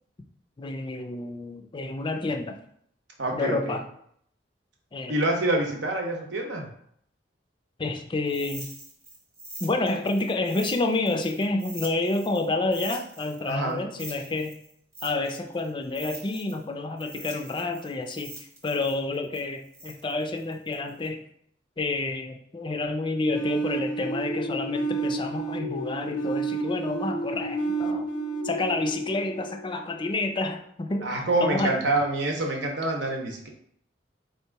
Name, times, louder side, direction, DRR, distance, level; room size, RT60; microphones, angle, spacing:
voice 1, 0.6-2.6 3.3-3.8 4.9-5.1 7.8-8.7 9.6-14.6 15.0-18.3 18.6-21.2 21.8-28.1 28.4-31.8, left 2 dB, 25° left, 5 dB, 0.4 m, -29 dB
voice 2, 3.2-3.8 5.1-6.7 13.5-13.8 31.0-33.5, right 2 dB, 70° right, 1 dB, 0.9 m, -26 dB
sound 1, 8.3-12.5 12.7-16.6 17.0-21.1, right 1 dB, 15° right, 1.0 m, -43 dB
sound 2, 23.3-30.1, right 2 dB, 75° left, 0.6 m, -30 dB
3.6 x 2.9 x 4.5 m, 0.67 s
head